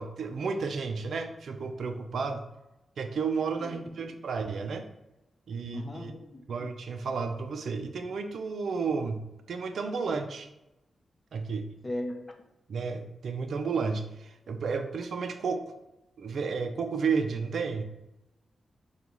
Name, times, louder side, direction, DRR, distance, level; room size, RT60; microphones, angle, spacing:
voice 1, 0.0-2.4 3.0-4.9 5.5-6.1 6.5-9.2 9.5-10.5 11.3-11.7 12.7-15.7 16.2-17.9, right 5 dB, 80° right, 6 dB, 0.4 m, -32 dB
voice 2, 3.6-3.9 5.7-6.4 11.8-12.3, left 1 dB, 25° left, 3 dB, 0.6 m, -37 dB
5.1 x 2.3 x 3.0 m, 0.93 s
cardioid pair, 90°, 0 cm